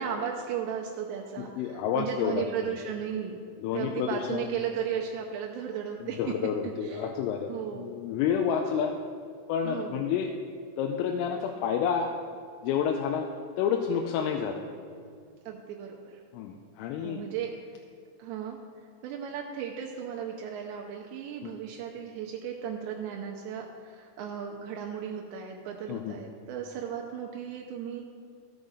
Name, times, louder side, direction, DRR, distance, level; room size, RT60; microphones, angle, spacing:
voice 1, 0.0-3.4 3.7-6.4 6.8-7.1 7.5-7.9 9.6-10.0 15.5-16.2 17.0-17.5 18.2-28.0, right 8 dB, 80° right, 1 dB, 2.6 m, -35 dB
voice 2, 1.4-2.7 3.6-4.5 6.0-8.9 9.5-10.3 10.8-12.1 12.6-13.3 13.6-14.6 16.3-17.2 25.9-26.1, left 7 dB, 90° left, 2 dB, 3.2 m, -29 dB
15.0 x 7.6 x 4.0 m, 2.3 s
omnidirectional pair, 5.7 m